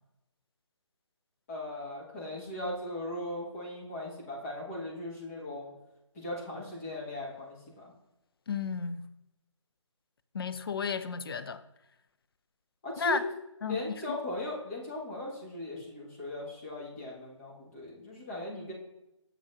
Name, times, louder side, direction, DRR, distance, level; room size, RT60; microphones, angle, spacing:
voice 1, 1.5-5.7 6.1-7.9 12.8-13.2 13.6-18.7, left 1 dB, 25° left, 1.5 m, -38 dB
voice 2, 8.5-9.0 10.3-11.6 13.0-13.2 13.6-13.8 14.1-14.2, left 5 dB, 50° left, 0.4 m, -32 dB
7.1 x 7.0 x 2.6 m
figure-of-eight pair, 150°, 16 cm